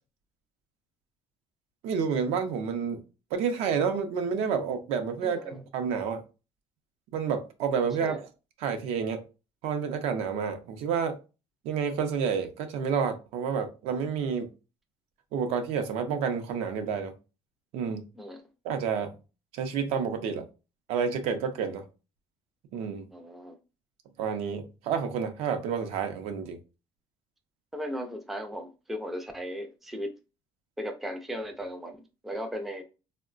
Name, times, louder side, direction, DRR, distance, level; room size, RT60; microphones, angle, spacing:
voice 1, 1.8-3.0 3.3-6.2 7.1-8.3 8.6-9.2 9.6-11.2 11.6-14.5 15.3-17.1 17.7-18.0 18.6-19.1 19.5-20.4 20.9-21.8 22.7-23.1 24.2-26.6, right 6 dB, 80° right, 0.6 m, -29 dB
voice 2, 5.2-5.6 8.0-8.2 18.1-18.4 23.1-23.6 27.7-30.2 30.8-32.8, equal, ahead, 0.3 m, -37 dB
3.6 x 2.1 x 2.4 m
cardioid pair, 155°, 10 cm